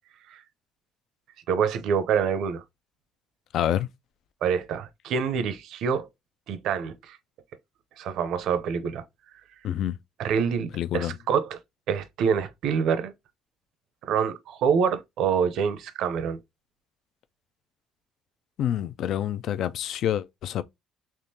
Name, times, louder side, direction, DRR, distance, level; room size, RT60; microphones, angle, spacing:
voice 1, 1.5-2.6 4.4-6.1 6.5-7.2 8.0-9.0 10.2-11.6 11.9-13.1 14.0-16.4, right 7 dB, 70° right, 0.6 m, -26 dB
voice 2, 3.5-3.9 9.6-10.0 10.7-11.1 18.6-20.6, left 11 dB, 60° left, 0.3 m, -27 dB
3.6 x 2.9 x 2.7 m
cardioid pair, 145°, 0 cm